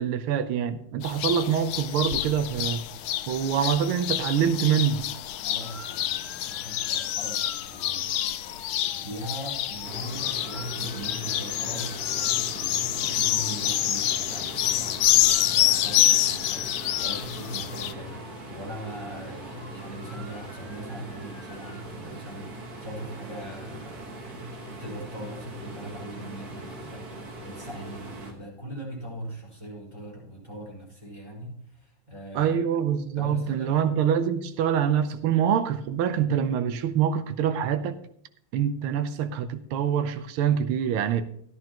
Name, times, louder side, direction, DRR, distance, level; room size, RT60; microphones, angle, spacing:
voice 1, 0.0-2.8 3.3-5.0 32.3-37.9 38.5-41.2, right 8 dB, 85° right, 1.6 m, -25 dB
sound 1, 1.0-17.9, left 13 dB, 85° left, 1.5 m, -27 dB
voice 2, 5.4-8.6 8.9-32.6 33.1-33.7, right 1 dB, 10° right, 5.0 m, -40 dB
Motor vehicle (road) / Siren, 5.6-21.8, left 1 dB, 25° left, 1.8 m, -49 dB
sound 2, 9.8-28.3, right 2 dB, 50° right, 1.9 m, -41 dB
14.0 x 11.0 x 3.0 m
omnidirectional pair, 2.3 m